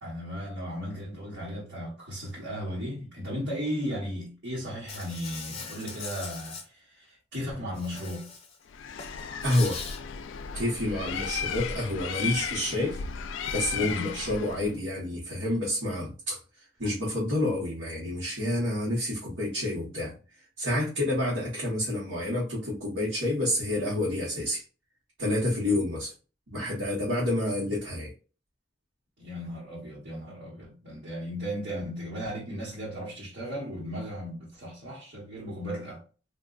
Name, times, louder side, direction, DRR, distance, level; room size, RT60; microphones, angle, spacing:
voice 1, 0.0-8.3 13.8-14.2 29.2-36.0, equal, 70° right, 1.4 m, -36 dB
Insect, 4.9-6.6 7.7-8.6 8.9-10.0, left 5 dB, 30° left, 0.7 m, -40 dB
Bird, 8.7-14.7, left 6 dB, 85° left, 0.4 m, -35 dB
voice 2, 9.4-9.8 10.5-13.0 13.5-16.4 16.8-20.1 20.6-24.6 25.2-26.1 26.5-28.1, left 1 dB, 90° right, 1.3 m, -28 dB
3.7 x 2.6 x 2.4 m
head